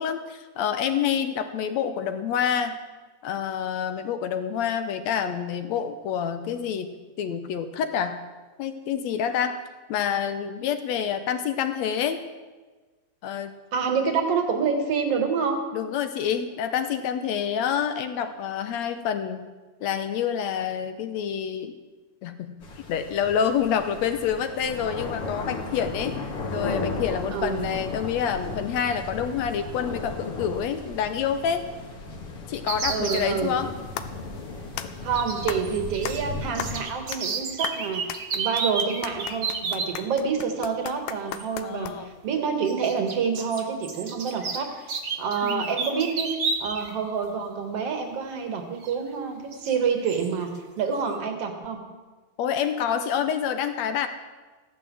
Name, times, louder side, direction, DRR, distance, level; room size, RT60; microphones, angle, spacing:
voice 1, 0.0-2.8 3.2-8.2 8.6-9.6 9.9-12.2 13.2-13.5 15.7-19.5 19.8-21.8 22.2-22.5 22.9-26.2 26.5-31.6 32.5-33.7 41.6-42.1 45.4-45.7 52.4-54.1, left 8 dB, 70° left, 9 dB, 1.8 m, -27 dB
voice 2, 13.7-15.7 27.3-27.7 32.9-33.5 35.0-46.3 46.6-50.5 50.8-51.8, right 6 dB, 50° right, 6 dB, 2.5 m, -27 dB
sound 1, 22.6-36.8, left 3 dB, 50° left, 2.5 m, -35 dB
sound 2, 32.7-33.3 35.1-36.2 36.5-39.9 41.3-41.4 42.6-46.9 47.2-47.3 48.8-48.9 49.5-49.7 50.1-50.3, right 5 dB, 70° right, 0.8 m, -31 dB
sound 3, 34.0-42.3, left 11 dB, 90° left, 2.4 m, -38 dB
14.5 x 11.0 x 7.6 m, 1.3 s
omnidirectional pair, 3.8 m